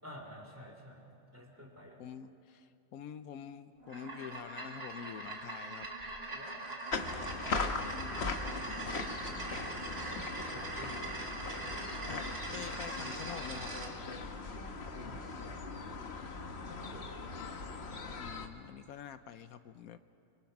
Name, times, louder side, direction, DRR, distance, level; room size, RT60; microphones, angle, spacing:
voice 1, 0.0-2.1 6.3-6.7 9.6-11.3 15.0-15.5 15.8-16.0 16.4-17.3, equal, 10° right, 1 dB, 3.5 m, -52 dB
voice 2, 2.0-5.9 12.1-13.7 18.2-20.0, left 8 dB, 80° left, 11 dB, 1.1 m, -46 dB
sound 1, 3.8-13.9, right 2 dB, 45° right, 2.3 m, -42 dB
sound 2, 6.9-18.5, left 4 dB, 50° left, 1.4 m, -40 dB
25.0 x 24.5 x 6.0 m, 2.8 s
omnidirectional pair, 1.5 m